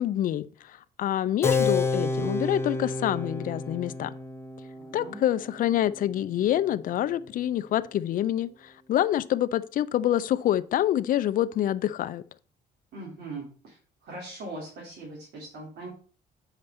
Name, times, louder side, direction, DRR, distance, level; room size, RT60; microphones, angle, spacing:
voice 1, 0.0-4.1 4.9-12.2, left 12 dB, 55° left, 0.5 m, -26 dB
Keyboard (musical), 1.4-7.5, left 3 dB, 15° left, 0.7 m, -31 dB
voice 2, 4.7-5.2 12.9-13.8 14.0-15.9, right 2 dB, 70° right, 3.1 m, -40 dB
8.1 x 5.1 x 4.3 m
cardioid pair, 110°, 17 cm